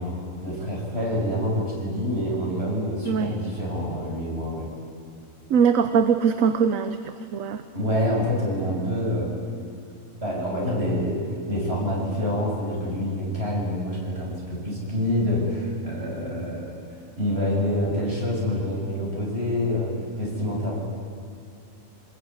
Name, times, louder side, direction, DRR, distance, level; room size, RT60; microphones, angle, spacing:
voice 1, 0.0-4.7 7.7-9.3 10.2-16.7 17.2-20.8, left 1 dB, 45° right, -3 dB, 7.0 m, -27 dB
voice 2, 5.5-7.6, right 6 dB, 70° right, 9 dB, 1.3 m, -22 dB
25.0 x 20.5 x 9.6 m, 2.6 s
omnidirectional pair, 1.5 m